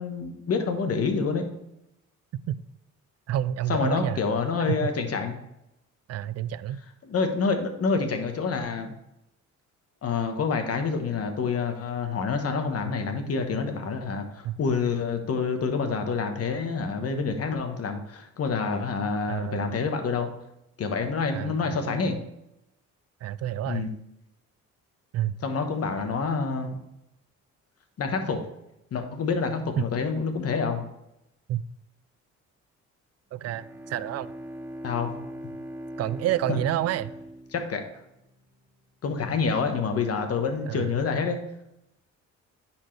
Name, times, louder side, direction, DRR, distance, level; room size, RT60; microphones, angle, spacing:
voice 1, 0.0-1.5 3.7-5.4 7.0-8.9 10.0-20.3 20.8-22.2 23.7-23.9 25.4-26.8 28.0-28.4 28.9-30.8 34.8-35.1 36.5-36.6 37.5-37.8 39.0-41.4, left 5 dB, 50° left, 1.2 m, -27 dB
voice 2, 3.3-4.2 4.7-4.9 6.1-6.8 14.4-14.5 19.3-19.8 21.3-22.1 23.2-23.9 25.1-25.4 29.8-29.9 31.5-31.6 33.3-34.3 36.0-37.1 40.7-40.9, right 12 dB, 55° right, 0.4 m, -29 dB
Bowed string instrument, 33.5-38.7, equal, 5° right, 0.8 m, -41 dB
9.9 x 4.5 x 3.3 m
cardioid pair, 90°, 30 cm